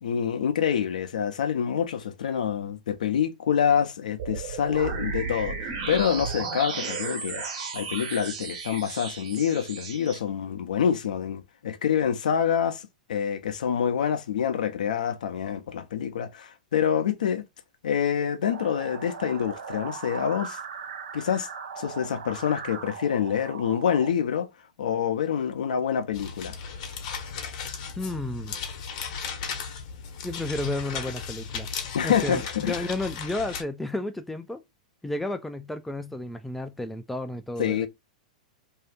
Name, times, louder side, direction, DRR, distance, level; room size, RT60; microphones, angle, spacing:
voice 1, 0.0-7.4 7.7-17.4 17.8-20.6 21.1-21.5 21.8-24.5 24.8-26.6 31.9-32.9 37.6-37.9, left 8 dB, 75° left, 0.6 m, -26 dB
sound 1, 4.2-10.2, right 5 dB, 60° right, 1.3 m, -34 dB
sound 2, 18.5-24.1, right 6 dB, 80° right, 0.5 m, -39 dB
sound 3, 26.1-33.6, left 6 dB, 55° left, 0.9 m, -36 dB
voice 2, 28.0-28.6 30.2-31.7 32.0-34.6 35.0-37.9, left 2 dB, 5° left, 0.3 m, -32 dB
2.7 x 2.4 x 3.4 m
hypercardioid pair, 110°, 4 cm